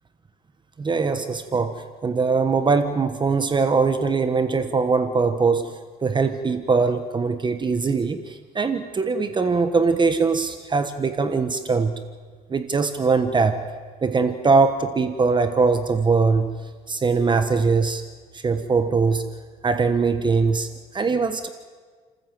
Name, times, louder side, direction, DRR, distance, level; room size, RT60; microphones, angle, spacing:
voice 1, 0.8-5.7 6.0-12.0 12.5-13.6 14.0-16.5 16.9-18.0 18.3-19.3 19.6-21.5, right 4 dB, 25° right, 9 dB, 1.3 m, -21 dB
30.0 x 15.0 x 7.6 m, 1.5 s
cardioid pair, 110°, 17 cm